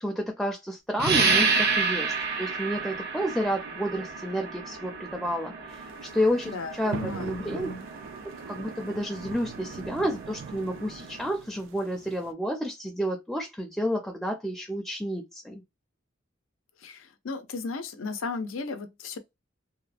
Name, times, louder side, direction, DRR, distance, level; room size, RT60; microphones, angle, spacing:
voice 1, 0.0-7.7 8.5-15.6, equal, ahead, 0.4 m, -30 dB
sound 1, 1.0-11.3, right 4 dB, 55° right, 0.7 m, -31 dB
sound 2, 5.7-12.3, right 6 dB, 75° right, 0.3 m, -42 dB
voice 2, 6.4-7.8 16.8-19.2, left 4 dB, 85° left, 0.6 m, -35 dB
2.8 x 2.1 x 2.4 m
head